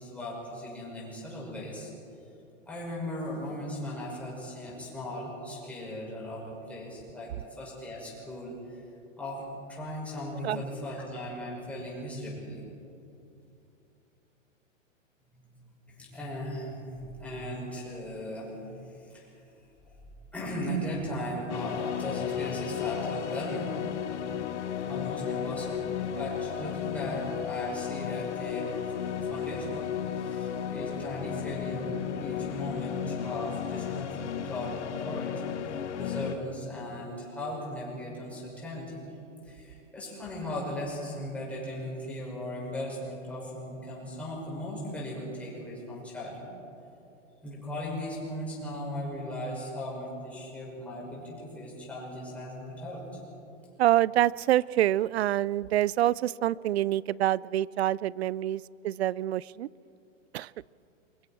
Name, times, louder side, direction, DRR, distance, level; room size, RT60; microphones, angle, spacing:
voice 1, 0.0-1.9 2.7-8.8 9.2-12.6 15.5-19.4 20.3-23.7 24.8-29.9 30.1-35.3 35.6-39.0 39.4-46.5 47.4-53.0, equal, 5° left, -6 dB, 6.4 m, -38 dB
sound 1, 21.5-36.4, left 8 dB, 60° left, 1.7 m, -34 dB
voice 2, 53.8-59.7 60.3-60.5, right 13 dB, 55° right, 23 dB, 0.5 m, -26 dB
29.0 x 24.0 x 4.6 m, 2.7 s
hypercardioid pair, 150°, 39 cm